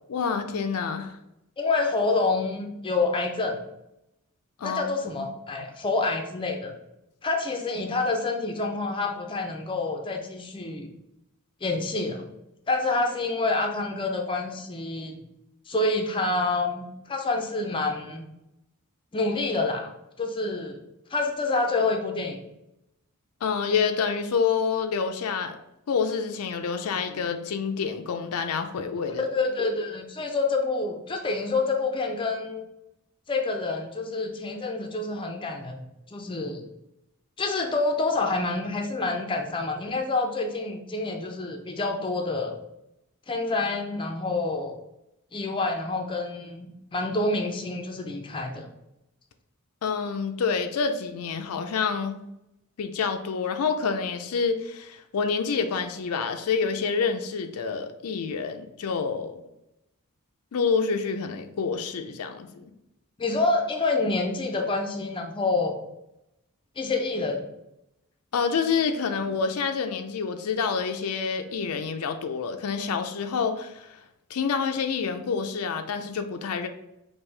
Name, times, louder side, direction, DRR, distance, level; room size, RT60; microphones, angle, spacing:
voice 1, 0.1-1.2 4.6-4.8 23.4-25.6 25.9-29.2 49.8-52.2 52.8-59.4 60.5-62.6 68.3-74.0 74.3-76.7, left 5 dB, 75° left, 7 dB, 0.4 m, -27 dB
voice 2, 1.6-3.6 4.6-6.7 7.2-10.9 11.6-12.3 12.7-15.2 15.7-18.3 19.1-19.9 20.2-20.8 21.1-22.4 29.2-32.6 33.3-35.8 36.1-36.6 37.4-42.5 43.3-44.8 45.3-48.7 63.2-65.8 66.8-67.5, left 3 dB, 20° left, 3 dB, 0.5 m, -27 dB
5.4 x 2.6 x 3.2 m, 0.87 s
head